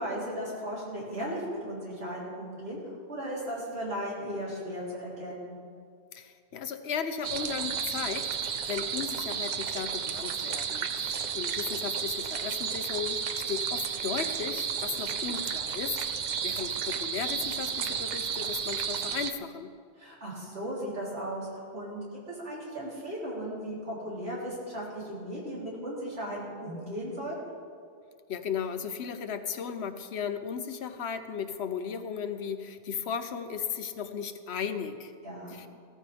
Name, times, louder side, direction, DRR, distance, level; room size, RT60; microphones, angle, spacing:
voice 1, 0.0-5.6 10.9-11.1 20.0-27.5 35.2-35.5, equal, 80° right, -6 dB, 4.0 m, -36 dB
voice 2, 6.1-16.0 16.4-19.7 28.3-35.1 35.5-35.7, left 7 dB, 85° left, 9 dB, 1.1 m, -35 dB
sound 1, 7.2-19.3, right 7 dB, 55° right, 0.6 m, -32 dB
16.0 x 14.0 x 3.5 m, 2.2 s
omnidirectional pair, 1.1 m